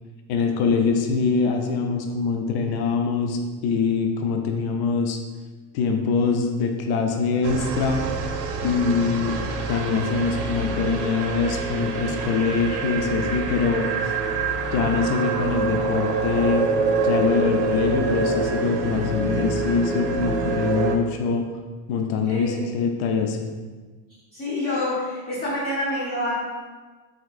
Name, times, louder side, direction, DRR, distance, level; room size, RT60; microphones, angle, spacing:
voice 1, 0.3-5.2 5.7-8.0 8.6-9.4 9.7-14.1 14.7-16.7 17.0-21.4 21.9-23.5, left 5 dB, 55° left, 5 dB, 0.5 m, -24 dB
sound 1, 7.4-21.0, right 4 dB, 60° right, 0.6 m, -26 dB
voice 2, 22.3-22.7 24.3-26.3, left 1 dB, 30° left, -9 dB, 1.0 m, -27 dB
4.2 x 3.8 x 2.4 m, 1.3 s
cardioid pair, 115°, 48 cm